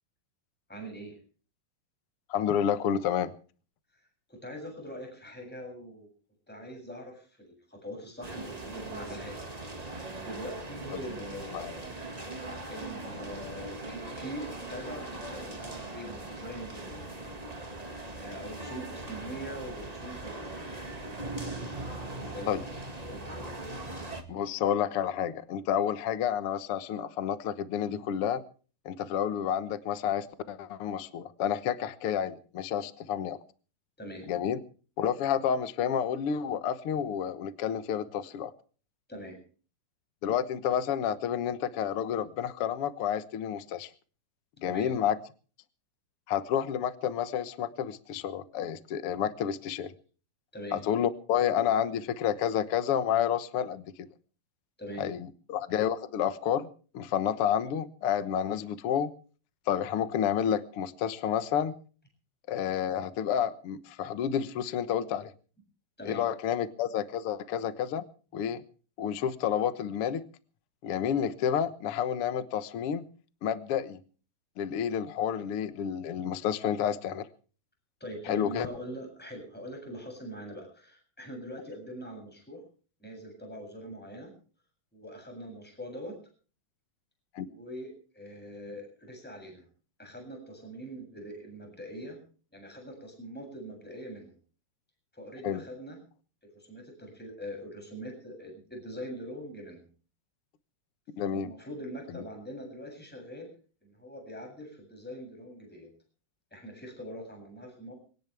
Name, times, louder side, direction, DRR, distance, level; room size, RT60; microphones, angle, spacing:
voice 1, 0.7-1.2 4.3-6.1 6.5-9.4 10.2-11.7 12.7-17.1 18.1-20.7 22.1-22.5 23.0-23.7 34.0-34.2 39.1-39.4 44.6-44.9 50.5-50.8 54.8-55.1 66.0-66.3 78.0-82.6 83.0-84.3 84.9-86.2 87.4-89.6 90.0-92.2 92.5-94.3 95.1-96.0 96.5-99.8 101.3-103.5 103.8-105.9 106.5-107.9, equal, ahead, 3 dB, 7.6 m, -43 dB
voice 2, 2.3-3.3 10.9-11.0 11.5-11.7 22.5-22.6 24.3-28.4 28.8-33.4 34.3-34.6 35.0-38.5 40.2-43.9 44.6-45.2 46.3-49.9 50.7-53.8 55.0-55.2 55.5-56.7 56.9-59.1 59.7-61.7 62.5-65.3 66.0-68.0 68.3-68.6 69.0-70.2 70.8-73.0 73.4-74.0 74.6-77.3 78.2-78.7 87.3-87.5 95.4-95.6 101.2-101.5 102.1-102.2, left 9 dB, 75° left, 12 dB, 1.3 m, -30 dB
sound 1, 8.2-24.2, right 2 dB, 25° right, 0.8 m, -40 dB
23.0 x 18.0 x 3.5 m, 0.40 s
omnidirectional pair, 4.3 m